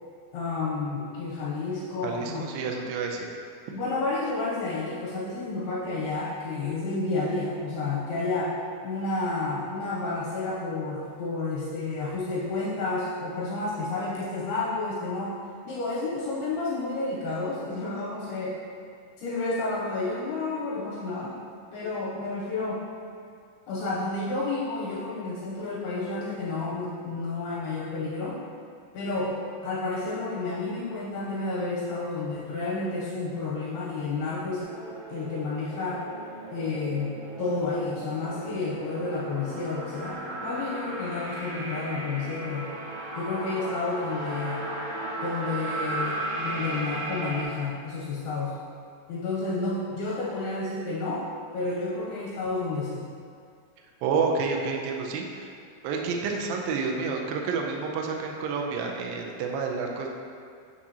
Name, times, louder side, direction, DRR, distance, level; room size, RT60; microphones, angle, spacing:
voice 1, 0.3-2.4 3.7-8.6 8.8-15.3 15.7-18.6 19.2-21.4 21.7-22.8 23.7-28.4 28.9-34.7 35.1-36.0 36.5-42.7 43.2-44.6 45.2-48.6 49.1-51.3 51.5-53.1, left 3 dB, 80° left, -6 dB, 2.5 m, -30 dB
voice 2, 2.0-3.2 54.0-55.5 55.8-60.1, right 5 dB, 85° right, 1 dB, 2.0 m, -29 dB
sound 1, 34.6-47.4, right 2 dB, 65° right, 2.4 m, -35 dB
7.2 x 6.0 x 2.8 m, 2.3 s
omnidirectional pair, 4.9 m